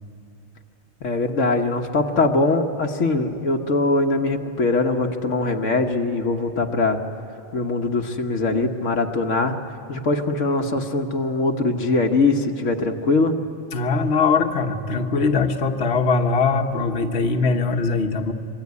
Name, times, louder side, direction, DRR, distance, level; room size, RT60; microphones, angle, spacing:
voice 1, 1.0-7.0 7.5-9.5 9.9-13.3, left 3 dB, 75° left, 3 dB, 1.5 m, -22 dB
voice 2, 13.7-18.3, left 4 dB, 55° left, 4 dB, 1.5 m, -21 dB
26.0 x 23.5 x 9.5 m, 2.7 s
omnidirectional pair, 1.3 m